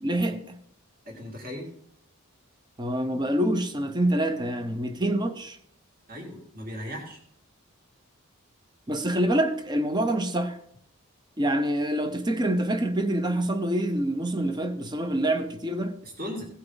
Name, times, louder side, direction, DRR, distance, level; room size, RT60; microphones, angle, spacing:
voice 1, 0.0-0.6 2.8-5.6 8.9-10.6 11.4-16.0, right 1 dB, 20° right, 0.7 m, -26 dB
voice 2, 1.1-1.7 6.1-7.2 16.0-16.4, equal, 40° right, 2.2 m, -37 dB
16.5 x 5.6 x 3.9 m
head